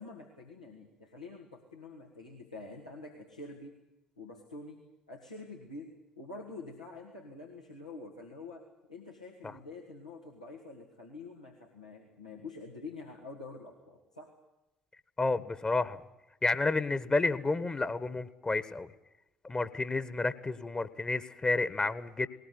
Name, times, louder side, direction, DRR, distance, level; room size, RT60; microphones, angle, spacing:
voice 1, 0.0-3.7 4.2-4.8 5.1-8.6 8.9-14.3, left 3 dB, 90° left, -2 dB, 2.1 m, -47 dB
voice 2, 15.2-16.0 16.4-18.9 19.4-22.3, left 3 dB, 25° left, 14 dB, 1.5 m, -30 dB
20.0 x 19.5 x 9.4 m, 0.93 s
figure-of-eight pair, 50°, 4 cm